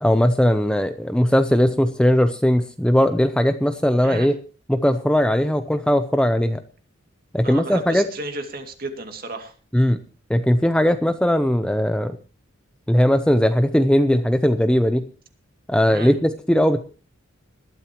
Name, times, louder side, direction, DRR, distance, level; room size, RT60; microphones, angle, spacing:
voice 1, 0.0-4.3 4.7-6.6 7.3-8.1 9.7-10.0 10.3-12.2 12.9-15.1 15.7-16.8, equal, 5° left, 9 dB, 0.6 m, -19 dB
voice 2, 7.4-9.5 15.9-16.1, right 2 dB, 45° right, 5 dB, 2.3 m, -33 dB
20.0 x 12.5 x 3.0 m, 0.36 s
head